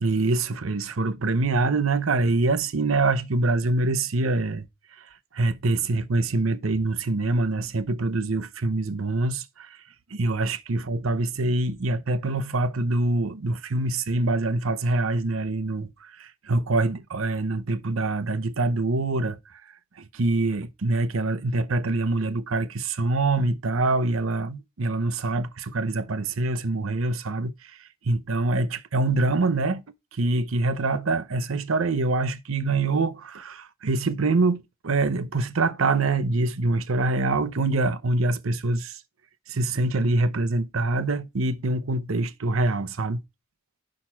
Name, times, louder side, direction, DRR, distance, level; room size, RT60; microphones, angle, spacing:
voice 1, 0.0-4.7 5.3-9.8 10.1-15.9 16.2-19.4 20.0-27.7 28.0-29.8 30.1-39.0 39.5-43.2, right 2 dB, 80° right, 0.8 m, -25 dB
6.4 x 5.9 x 4.4 m
head